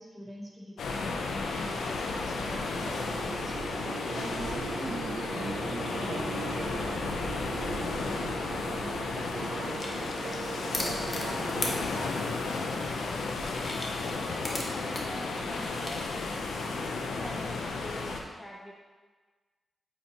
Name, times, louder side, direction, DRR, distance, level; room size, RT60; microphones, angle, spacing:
voice 1, 0.0-3.6 4.1-6.4 6.8-7.1, equal, 20° right, -4 dB, 1.8 m, -43 dB
sound 1, 0.8-18.2, left 3 dB, 90° left, 0.6 m, -33 dB
sound 2, 2.3-11.8, right 5 dB, 80° right, 0.4 m, -40 dB
sound 3, 8.3-16.9, left 1 dB, 35° left, 1.1 m, -41 dB
voice 2, 8.4-11.5 11.8-16.0 17.1-18.7, equal, 15° left, -3 dB, 0.8 m, -46 dB
8.6 x 4.2 x 2.9 m, 1.4 s
cardioid pair, 65°, 0 cm